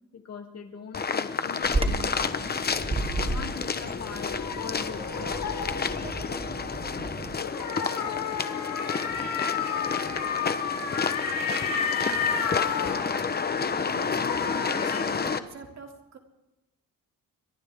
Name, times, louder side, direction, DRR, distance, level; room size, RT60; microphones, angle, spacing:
voice 1, 0.1-2.6 3.2-5.7 8.4-8.5, left 6 dB, 45° left, 4 dB, 2.8 m, -41 dB
sound 1, 0.9-15.4, left 5 dB, 25° left, 1.0 m, -30 dB
Bird vocalization bird call bird song, 1.6-7.3, right 2 dB, 15° right, 1.5 m, -33 dB
sound 2, 1.8-6.6 7.4-14.0 14.3-15.0, left 6 dB, 65° left, 5.4 m, -32 dB
voice 2, 13.8-16.2, right 5 dB, 50° right, 3 dB, 3.0 m, -44 dB
29.5 x 24.0 x 3.7 m, 0.99 s
wide cardioid pair, 165°, 35 cm